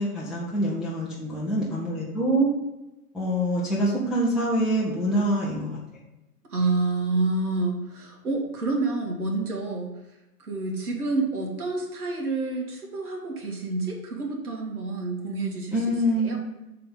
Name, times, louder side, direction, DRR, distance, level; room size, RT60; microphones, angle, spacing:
voice 1, 0.0-2.5 3.1-5.8 15.7-16.5, right 1 dB, ahead, -8 dB, 0.7 m, -25 dB
voice 2, 6.5-9.9 10.4-15.8 16.2-16.4, right 3 dB, 70° right, -1 dB, 1.9 m, -28 dB
6.7 x 3.8 x 5.4 m, 0.97 s
figure-of-eight pair, 115°, 46 cm